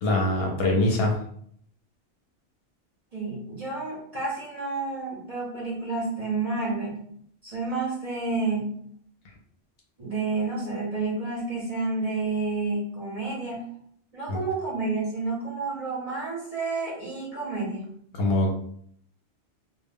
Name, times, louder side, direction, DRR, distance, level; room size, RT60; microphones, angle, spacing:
voice 1, 0.0-1.1 14.3-14.4 18.1-18.7, left 1 dB, 65° left, 0 dB, 0.7 m, -23 dB
voice 2, 3.1-7.1 7.4-8.8 10.0-13.6 14.1-17.9, right 3 dB, 45° right, -5 dB, 0.5 m, -30 dB
2.1 x 2.0 x 3.4 m, 0.65 s
omnidirectional pair, 1.2 m